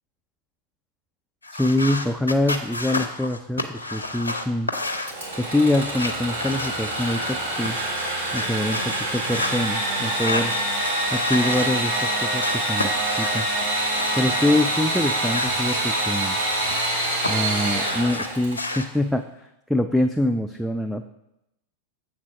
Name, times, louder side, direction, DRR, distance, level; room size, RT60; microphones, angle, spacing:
sound 1, 1.4-7.3 7.6-9.6 10.1-12.1 12.4-14.5 14.9-17.3 17.6-18.9, left 2 dB, 80° left, 0.6 m, -32 dB
voice 1, 1.5-4.7 5.4-7.8 8.3-10.5 11.1-11.9 12.2-13.5 14.2-16.4 17.3-19.2 19.7-21.0, left 1 dB, ahead, 5 dB, 0.3 m, -24 dB
Engine / Sawing, 5.0-18.7, right 1 dB, 65° right, 2.0 m, -26 dB
7.4 x 3.9 x 5.7 m, 0.86 s
figure-of-eight pair, 90°, 0 cm